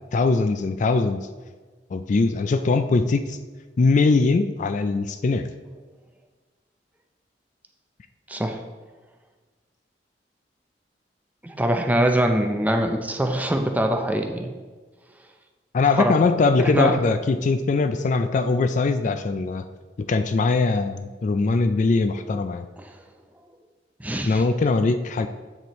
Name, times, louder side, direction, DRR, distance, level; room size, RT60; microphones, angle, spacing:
voice 1, 0.1-1.3 1.9-3.4 3.8-5.5 15.7-19.6 20.0-22.7 24.3-25.3, left 3 dB, 45° left, 9 dB, 0.3 m, -21 dB
voice 2, 8.3-8.6 11.4-14.5 16.0-16.1 16.6-17.0 22.8-22.9 24.0-24.4, right 1 dB, 10° right, 4 dB, 0.5 m, -23 dB
7.9 x 6.9 x 3.0 m, 1.4 s
head